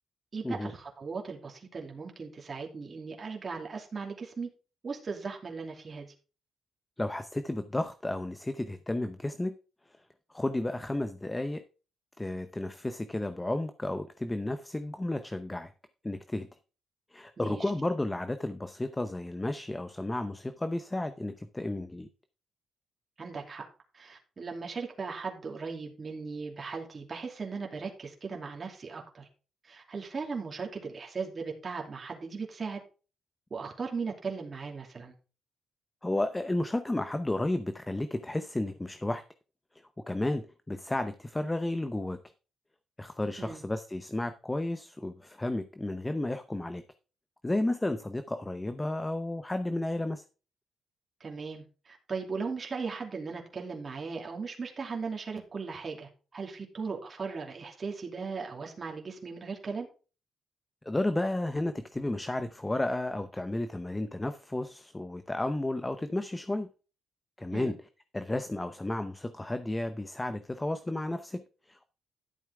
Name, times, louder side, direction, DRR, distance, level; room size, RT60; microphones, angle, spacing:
voice 1, 0.3-4.5 4.8-6.1 17.4-17.6 23.2-23.6 23.9-29.3 29.6-32.8 33.5-35.1 43.4-43.6 51.2-59.9 67.5-67.7, right 4 dB, 40° right, 2.7 m, -38 dB
voice 2, 7.0-9.6 10.3-11.6 12.2-15.7 16.0-16.5 17.1-22.1 36.0-39.2 40.1-42.2 43.0-46.8 47.4-50.2 60.8-66.7 67.4-67.8 68.1-71.8, left 1 dB, 15° left, 0.7 m, -32 dB
12.0 x 7.2 x 3.5 m
cardioid pair, 95°, 0 cm